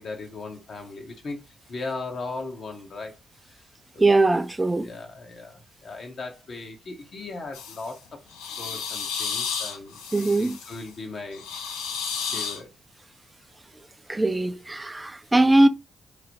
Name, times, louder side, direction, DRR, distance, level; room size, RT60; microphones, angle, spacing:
voice 1, 0.0-1.4 1.7-3.6 3.9-4.2 4.8-8.2 8.6-10.0 10.4-11.4 12.3-12.7, left 3 dB, 55° left, 0.7 m, -38 dB
voice 2, 4.0-4.9 10.1-10.6 14.1-15.7, right 2 dB, 20° right, 0.4 m, -20 dB
sound 1, 7.5-7.9 8.3-10.8 11.3-12.6, left 6 dB, 85° left, 0.4 m, -32 dB
3.0 x 2.0 x 2.7 m
hypercardioid pair, 45°, 0 cm